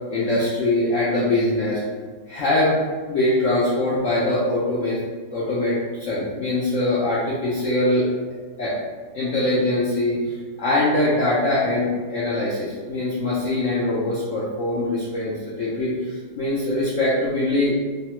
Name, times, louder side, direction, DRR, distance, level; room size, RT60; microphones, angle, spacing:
voice 1, 0.1-1.8 2.3-2.8 3.1-5.0 5.3-8.1 8.6-8.8 9.1-17.7, left 1 dB, 80° left, -7 dB, 0.7 m, -22 dB
3.0 x 2.0 x 2.9 m, 1.5 s
omnidirectional pair, 1.9 m